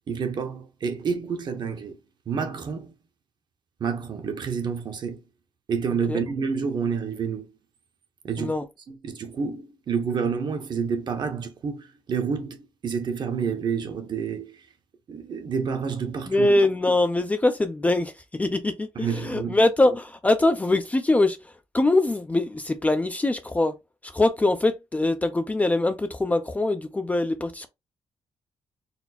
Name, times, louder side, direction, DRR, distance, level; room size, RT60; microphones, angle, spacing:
voice 1, 0.1-2.0 2.3-2.9 3.8-5.2 5.7-7.5 8.2-8.5 8.9-14.7 15.1-16.5 18.9-19.6, right 6 dB, 50° right, 0.9 m, -29 dB
voice 2, 16.3-23.7 24.0-27.7, left 2 dB, 15° left, 0.4 m, -23 dB
4.2 x 2.1 x 4.2 m
wide cardioid pair, 145°, 10 cm